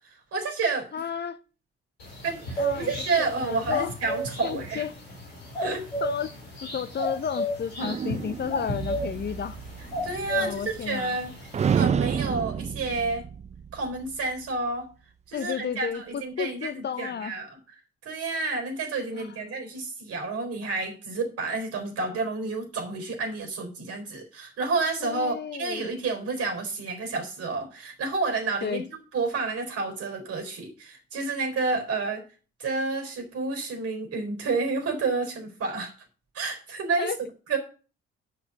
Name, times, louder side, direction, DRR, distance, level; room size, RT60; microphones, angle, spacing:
voice 1, 0.3-0.9 2.2-4.8 5.6-5.8 10.0-11.3 11.7-13.3 13.7-14.9 15.3-17.6 18.0-32.2 32.6-35.9 36.3-37.1 37.5-37.6, right 3 dB, 50° right, 4.1 m, -30 dB
voice 2, 0.9-1.4 2.6-2.9 3.2-3.9 4.4-5.0 5.6-5.7 6.0-6.3 6.7-9.6 10.4-11.1 15.3-17.4 19.1-19.6 25.0-25.9 28.6-28.8 37.0-37.2, left 7 dB, 35° left, 0.8 m, -32 dB
sound 1, 2.0-11.8, equal, 80° left, 4.2 m, -34 dB
sound 2, 7.8-11.2 11.5-14.2, right 7 dB, 25° right, 0.4 m, -30 dB
10.0 x 6.0 x 6.7 m
figure-of-eight pair, 45°, 30 cm